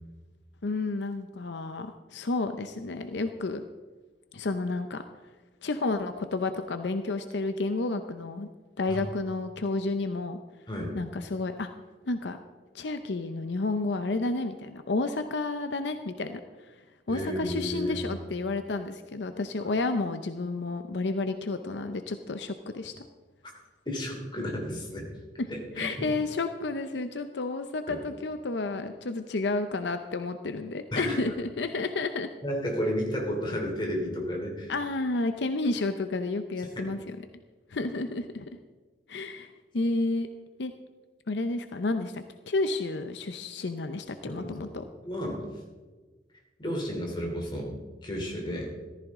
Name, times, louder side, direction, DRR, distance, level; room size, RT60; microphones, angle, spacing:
voice 1, 0.6-3.6 4.3-5.1 5.6-8.5 8.8-10.4 10.9-11.7 12.1-12.4 12.7-16.8 17.1-23.0 25.4-25.5 25.7-32.3 34.7-37.2 37.7-38.5 39.1-40.3 40.6-40.7 41.3-44.8, left 3 dB, 75° left, 8 dB, 0.6 m, -31 dB
voice 2, 17.1-18.1 23.8-25.1 25.5-26.1 27.9-28.0 30.9-31.3 32.4-34.7 36.7-36.9 44.3-44.8 45.0-45.4 46.6-47.7 48.0-48.7, equal, 25° left, 0 dB, 3.1 m, -32 dB
14.5 x 14.5 x 3.7 m, 1.3 s
head